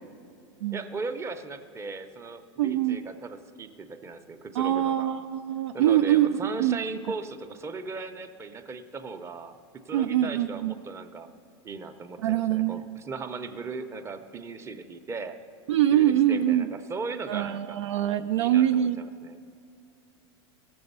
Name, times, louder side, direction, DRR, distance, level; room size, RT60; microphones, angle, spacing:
voice 1, 0.7-5.1 5.7-9.5 9.9-11.3 11.6-15.4 15.9-17.9 18.3-19.4, right 4 dB, 20° right, 8 dB, 0.6 m, -37 dB
voice 2, 2.6-3.0 4.5-6.8 9.9-10.7 12.2-13.0 15.7-16.7 17.3-19.1, right 11 dB, 90° right, 6 dB, 0.4 m, -24 dB
17.0 x 6.9 x 5.4 m, 2.5 s
supercardioid pair, 130°, 15 cm